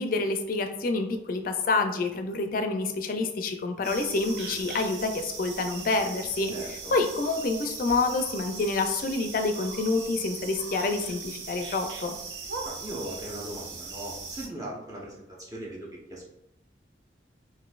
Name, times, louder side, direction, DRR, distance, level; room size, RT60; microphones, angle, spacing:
voice 1, 0.0-6.5 6.9-12.1, left 3 dB, 50° left, 6 dB, 0.4 m, -28 dB
sound 1, 3.8-14.5, right 4 dB, 80° right, 0.5 m, -39 dB
voice 2, 6.5-6.9 12.6-16.3, right 1 dB, 20° right, -4 dB, 0.8 m, -39 dB
3.9 x 2.6 x 2.4 m, 0.82 s
head